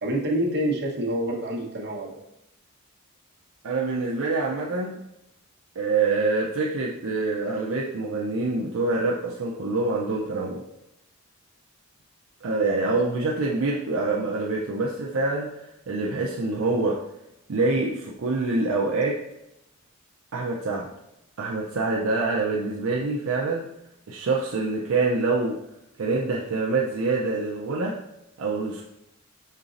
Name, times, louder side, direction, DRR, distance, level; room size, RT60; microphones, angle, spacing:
voice 1, 0.0-2.2, right 1 dB, 50° right, -2 dB, 1.0 m, -27 dB
voice 2, 3.6-5.0 5.8-10.6 12.4-17.0 17.5-19.2 20.3-20.9 21.4-23.6 24.1-25.6 26.0-28.0 28.4-28.8, right 3 dB, 65° right, -2 dB, 0.5 m, -25 dB
5.4 x 3.9 x 2.5 m, 0.86 s
head